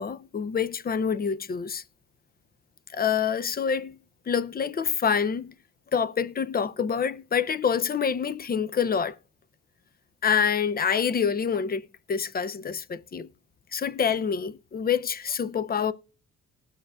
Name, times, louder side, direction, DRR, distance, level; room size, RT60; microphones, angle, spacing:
voice 1, 0.0-1.8 2.9-4.0 4.3-5.5 5.9-9.2 10.2-13.3 13.7-15.9, left 7 dB, 30° left, 0.6 m, -26 dB
19.0 x 6.5 x 2.4 m
cardioid pair, 90°, 30 cm